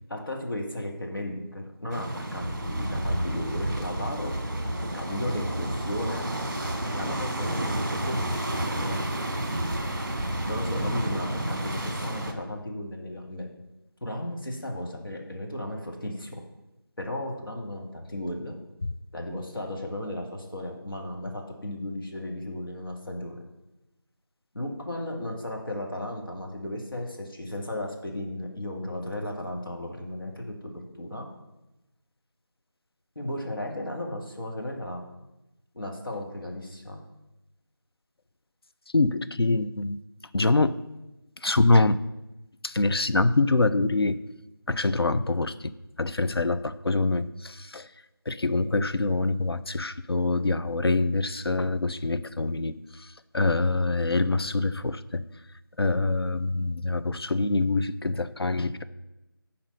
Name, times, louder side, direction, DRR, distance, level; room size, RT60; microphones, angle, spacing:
voice 1, 0.1-4.3 4.9-6.3 6.9-9.0 10.5-13.5 14.0-16.4 17.0-18.6 19.1-23.4 24.5-31.3 33.2-35.0 35.7-37.0, left 1 dB, 60° left, 0 dB, 2.0 m, -35 dB
sound 1, 1.9-12.3, right 1 dB, 45° right, 1.3 m, -30 dB
voice 2, 38.9-40.0 40.3-40.8 41.4-42.0 42.6-44.2 44.7-45.5 46.0-47.9 48.3-53.1 53.3-55.2 55.8-58.8, left 2 dB, 80° left, 12 dB, 0.6 m, -25 dB
10.5 x 4.3 x 5.5 m, 0.97 s
figure-of-eight pair, 175°, 13 cm